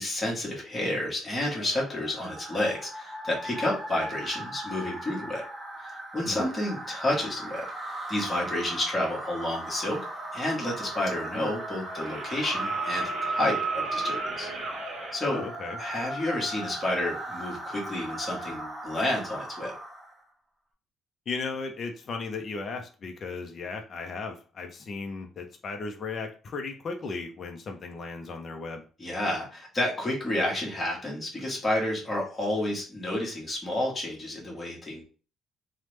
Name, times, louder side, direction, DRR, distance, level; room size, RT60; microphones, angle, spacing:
voice 1, 0.0-5.4 5.8-7.6 8.1-10.0 10.3-14.5 15.1-15.4 15.8-19.7 29.0-35.0, left 1 dB, 20° left, -2 dB, 1.1 m, -30 dB
sound 1, 1.3-20.2, right 1 dB, 10° right, 0.6 m, -39 dB
sound 2, 11.9-15.2 16.9-17.0, right 3 dB, 45° right, 0.9 m, -32 dB
voice 2, 15.3-15.8 21.3-28.8, left 4 dB, 35° left, 4 dB, 0.5 m, -36 dB
3.1 x 2.0 x 3.2 m, 0.38 s
cardioid pair, 155°, 0 cm